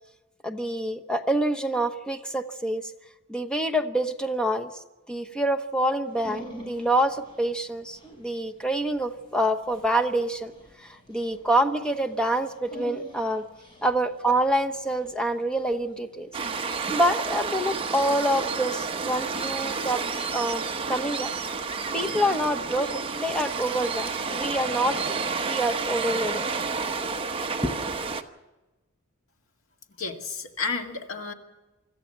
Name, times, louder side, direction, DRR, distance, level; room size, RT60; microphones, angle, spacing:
voice 1, 0.4-2.9 3.3-4.7 5.1-10.5 10.8-13.4 13.8-16.3 16.9-20.0 20.3-20.6 20.9-21.3 21.9-26.4 27.6-28.0, right 1 dB, 5° left, 7 dB, 1.0 m, -26 dB
Dog, 6.1-16.9, right 2 dB, 25° left, 7.3 m, -48 dB
Waves surf, 16.3-28.2, right 4 dB, 25° right, 1.0 m, -30 dB
voice 2, 30.0-31.3, left 4 dB, 70° left, 3 dB, 2.1 m, -31 dB
25.0 x 14.0 x 7.6 m, 1.1 s
head